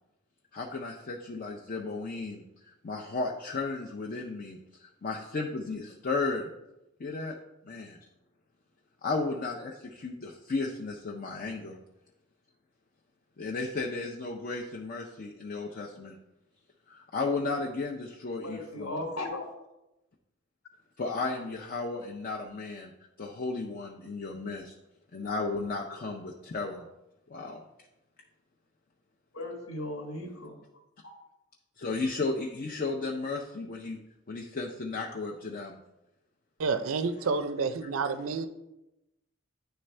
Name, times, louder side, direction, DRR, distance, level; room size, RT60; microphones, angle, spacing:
voice 1, 0.5-6.5 7.0-7.3 7.6-8.0 9.0-11.8 13.4-16.1 16.9-18.9 21.0-22.9 23.2-24.8 25.1-26.9 27.3-27.6 31.8-34.0 34.3-35.8, left 3 dB, 45° left, 0 dB, 0.5 m, -34 dB
voice 2, 18.4-19.4 29.3-30.6 31.0-31.1, left 1 dB, 90° left, 0 dB, 1.5 m, -36 dB
voice 3, 36.6-38.5, right 4 dB, 80° right, 10 dB, 0.5 m, -29 dB
9.8 x 3.4 x 3.2 m, 0.93 s
head